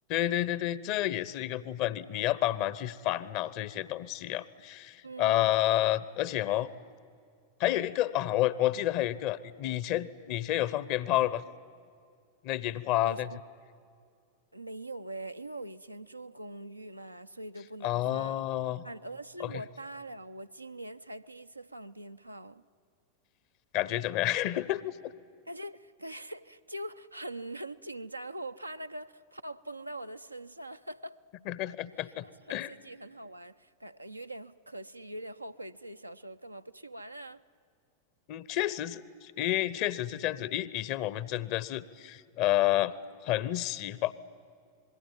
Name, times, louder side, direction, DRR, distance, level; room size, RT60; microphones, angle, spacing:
voice 1, 0.1-6.7 7.6-11.4 12.4-13.3 17.8-18.8 19.4-19.5 23.7-25.1 31.5-32.7 38.3-42.9 43.2-44.1, left 14 dB, 45° left, 0.8 m, -30 dB
voice 2, 5.0-5.6 13.0-13.4 14.5-18.5 18.8-22.6 25.5-31.2 31.7-31.8 32.0-37.4, right 1 dB, 85° right, 0.6 m, -43 dB
26.0 x 21.5 x 9.2 m
figure-of-eight pair, 90°, 0 cm